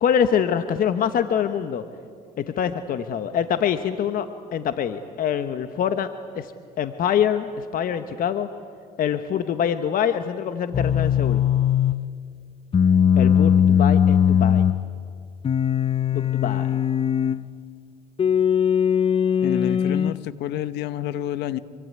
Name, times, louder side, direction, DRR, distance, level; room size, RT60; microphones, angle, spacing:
voice 1, 0.0-1.8 2.4-6.1 6.3-6.5 6.8-8.5 9.0-11.4 13.2-14.7 16.1-16.7, left 8 dB, 55° left, 9 dB, 1.2 m, -25 dB
sound 1, 10.7-12.0 12.7-14.8 15.4-17.4 18.2-20.2, left 8 dB, 35° left, 0.8 m, -19 dB
voice 2, 19.4-21.6, left 12 dB, 80° left, 14 dB, 1.1 m, -28 dB
26.0 x 24.0 x 9.6 m, 2.2 s
cardioid pair, 110°, 17 cm